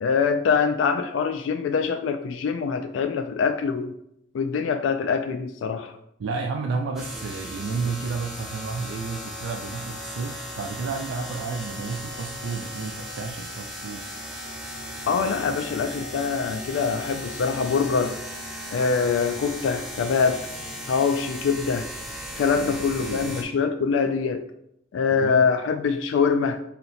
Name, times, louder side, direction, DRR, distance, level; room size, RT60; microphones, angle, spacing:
voice 1, 0.0-3.9 4.3-6.0 15.1-18.2 18.7-20.5 20.9-21.9 22.4-24.4 24.9-26.6, left 5 dB, 75° left, 8 dB, 0.3 m, -24 dB
voice 2, 6.2-14.1 22.6-23.4 25.1-25.4, right 4 dB, 80° right, 2 dB, 0.4 m, -32 dB
sound 1, 7.0-23.4, equal, ahead, 0.5 m, -37 dB
3.8 x 2.9 x 4.0 m, 0.77 s
head